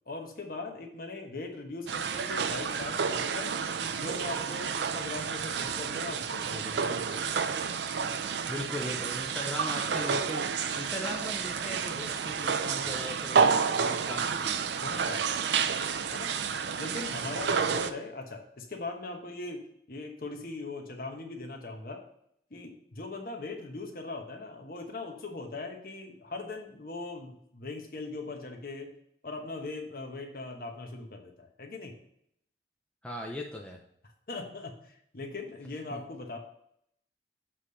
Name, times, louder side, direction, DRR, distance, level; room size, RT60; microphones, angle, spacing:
voice 1, 0.1-3.5 4.0-7.2 12.8-13.0 14.8-15.6 16.1-16.3 16.8-19.6 19.9-22.0 22.5-28.9 29.2-31.9 34.3-36.4, left 3 dB, 50° left, 2 dB, 1.2 m, -40 dB
sound 1, 1.9-17.9, right 6 dB, 75° right, 0.4 m, -30 dB
voice 2, 8.5-14.8 17.4-17.6 33.0-33.8 35.9-36.0, left 1 dB, 5° left, -1 dB, 0.6 m, -39 dB
7.5 x 3.3 x 5.6 m, 0.70 s
head